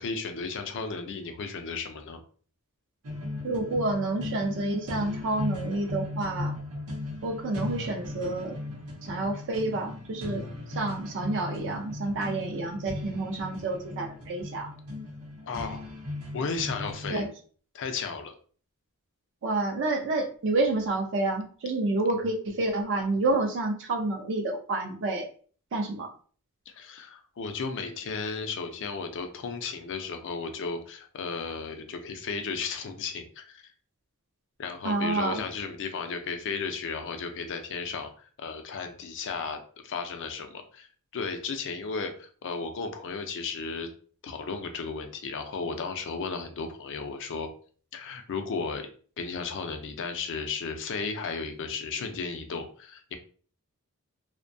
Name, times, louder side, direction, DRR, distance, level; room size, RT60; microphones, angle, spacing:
voice 1, 0.0-2.2 15.5-15.8 16.3-17.3 17.7-18.3 26.7-33.7 34.6-43.9 44.2-47.5 47.9-48.9 49.2-53.1, left 4 dB, 55° left, 6 dB, 0.4 m, -34 dB
sound 1, 3.0-17.1, left 2 dB, 90° right, 0.7 m, -37 dB
voice 2, 3.4-6.6 7.2-8.6 9.0-14.7 17.1-17.3 19.4-25.3 25.7-26.1 34.8-35.4, right 2 dB, 55° right, 4 dB, 0.4 m, -29 dB
2.6 x 2.1 x 2.6 m, 0.43 s
head